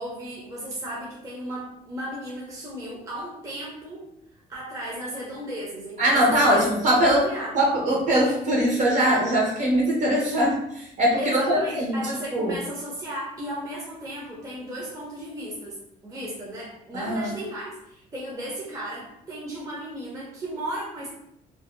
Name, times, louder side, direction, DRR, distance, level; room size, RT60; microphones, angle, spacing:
voice 1, 0.0-4.1 4.5-6.7 7.0-7.6 11.2-15.8 16.0-21.1, right 1 dB, 20° right, -4 dB, 0.6 m, -35 dB
voice 2, 6.0-7.3 7.5-11.2 11.5-12.0 12.3-12.5 16.9-17.3, right 1 dB, 45° right, -3 dB, 0.9 m, -21 dB
2.6 x 2.1 x 2.5 m, 0.81 s
cardioid pair, 110°, 17 cm